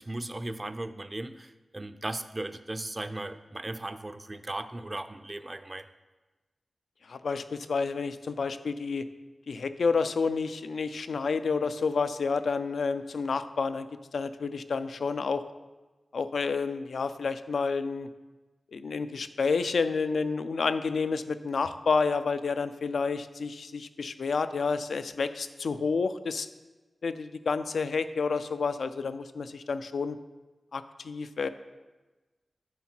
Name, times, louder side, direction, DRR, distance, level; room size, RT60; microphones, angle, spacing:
voice 1, 0.0-5.9, right 2 dB, 30° right, 10 dB, 0.4 m, -37 dB
voice 2, 7.1-9.1 9.5-13.9 14.1-15.4 16.1-18.1 18.7-26.5 27.0-30.2 30.7-31.5, left 4 dB, 85° left, 12 dB, 0.3 m, -29 dB
9.5 x 4.3 x 4.4 m, 1.2 s
cardioid pair, 55°, 0 cm